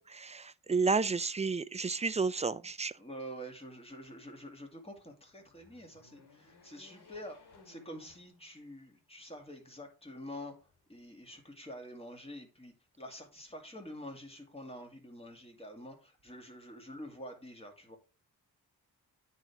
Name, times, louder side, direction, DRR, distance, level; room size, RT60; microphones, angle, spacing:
voice 1, 0.0-2.9, right 4 dB, 20° right, 0.3 m, -31 dB
voice 2, 3.0-7.4 7.7-10.5 10.9-18.0, equal, 15° left, 2.1 m, -47 dB
sound 1, 5.3-8.9 9.4-9.5 10.6-11.4, left 3 dB, 90° left, 2.5 m, -61 dB
9.2 x 4.2 x 4.7 m
wide cardioid pair, 110°, 38 cm